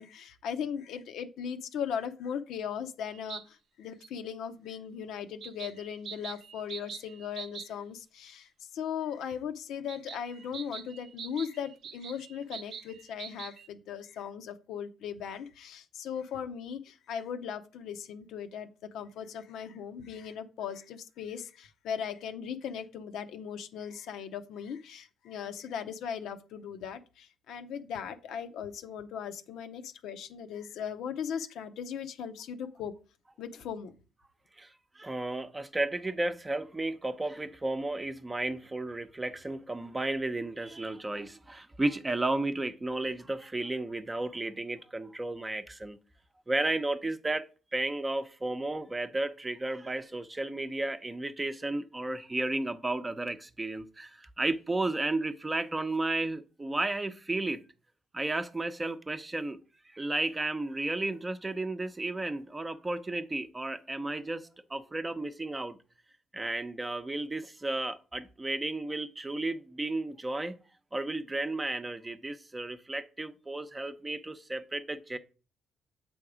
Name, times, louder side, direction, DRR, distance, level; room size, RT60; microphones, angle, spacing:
voice 1, 0.0-18.7 18.9-32.9 33.4-33.9, left 8 dB, 80° left, 0.7 m, -38 dB
sound 1, 3.1-3.4 4.0-4.1 5.4-7.7 9.9-13.7, right 7 dB, 65° right, 0.5 m, -44 dB
voice 2, 34.6-46.0 46.5-47.5 47.7-57.6 58.1-59.6 59.8-65.8 66.3-70.6 70.9-75.2, right 2 dB, 20° right, 0.7 m, -33 dB
7.7 x 3.5 x 4.9 m
cardioid pair, 90°, 0 cm